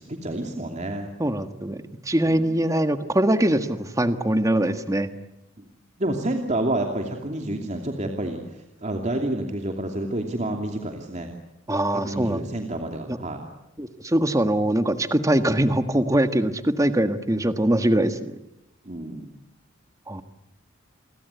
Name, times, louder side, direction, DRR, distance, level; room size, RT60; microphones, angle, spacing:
voice 1, 0.0-1.1 2.3-2.6 6.0-8.4 8.8-11.3 11.9-13.4 18.9-19.3, right 1 dB, 35° right, 3 dB, 2.7 m, -29 dB
voice 2, 1.2-1.8 2.1-5.1 11.7-12.4 13.1-13.2 13.8-18.3 20.1-20.2, right 1 dB, 15° right, 9 dB, 1.5 m, -22 dB
29.5 x 23.0 x 8.3 m, 0.86 s
head